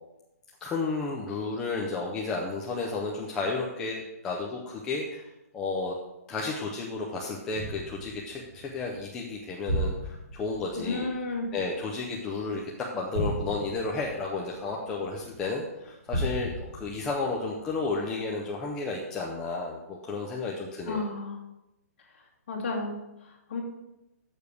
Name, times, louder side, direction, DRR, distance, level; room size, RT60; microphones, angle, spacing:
voice 1, 0.6-5.3 5.5-5.9 6.3-11.1 11.5-21.1, left 3 dB, 5° left, -2 dB, 0.4 m, -32 dB
sound 1, 7.5-12.5 13.1-15.5 16.1-18.1 18.6-18.7, equal, 40° right, 3.7 m, -35 dB
voice 2, 10.7-11.5 20.9-21.4 22.5-23.6, left 3 dB, 40° left, -3 dB, 2.4 m, -32 dB
6.9 x 6.3 x 6.8 m, 0.94 s
hypercardioid pair, 175°, 9 cm